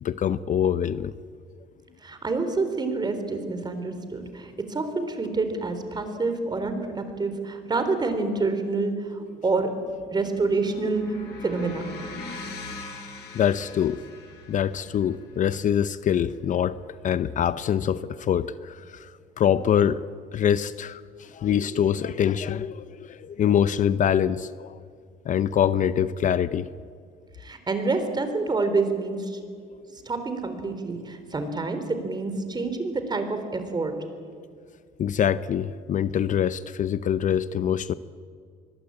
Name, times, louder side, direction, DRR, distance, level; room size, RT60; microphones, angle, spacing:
voice 1, 0.0-1.1 13.3-14.0 14.5-16.8 17.0-20.0 20.3-24.8 25.2-26.7 35.0-37.9, left 9 dB, 50° left, 15 dB, 0.7 m, -24 dB
voice 2, 2.0-9.7 10.1-11.2 11.4-11.8 27.4-29.4 30.1-34.0, right 3 dB, 25° right, 8 dB, 3.9 m, -27 dB
sound 1, 9.8-17.8, left 3 dB, 75° left, 7.1 m, -42 dB
24.5 x 21.5 x 8.8 m, 2.1 s
cardioid pair, 110°, 17 cm